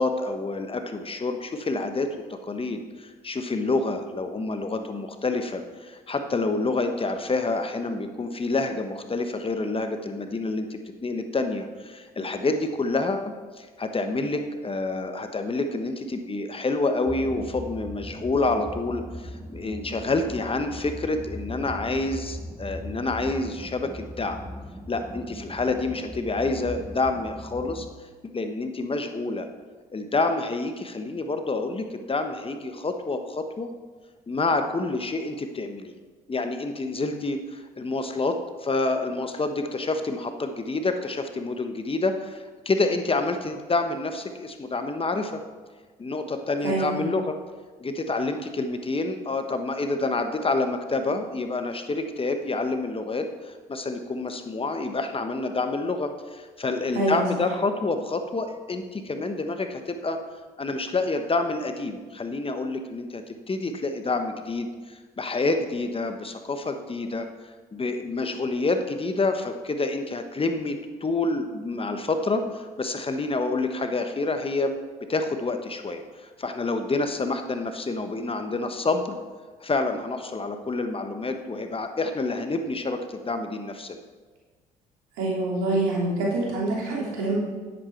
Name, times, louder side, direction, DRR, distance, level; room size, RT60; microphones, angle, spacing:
voice 1, 0.0-24.4 24.9-27.9 28.3-29.5 29.9-33.7 34.3-35.9 36.3-45.4 46.0-47.4 47.8-60.2 60.6-67.2 67.7-74.7 75.1-79.2 79.6-84.0, left 3 dB, 30° left, 7 dB, 1.1 m, -28 dB
sound 1, 17.1-27.9, left 1 dB, ahead, 0.8 m, -39 dB
voice 2, 46.6-47.0 56.9-57.3 85.2-87.3, right 2 dB, 80° right, -3 dB, 2.9 m, -25 dB
9.9 x 7.9 x 4.5 m, 1.4 s
hypercardioid pair, 55°, 19 cm